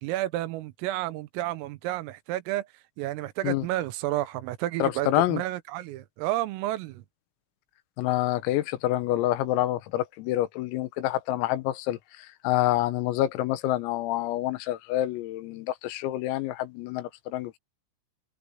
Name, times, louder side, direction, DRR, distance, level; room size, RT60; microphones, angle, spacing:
voice 1, 0.0-2.7 3.0-7.0, right 15 dB, 85° right, 3.7 m, -31 dB
voice 2, 4.8-5.4 8.0-12.0 12.4-17.6, left 15 dB, 90° left, 3.9 m, -27 dB
omnidirectional pair, 5.9 m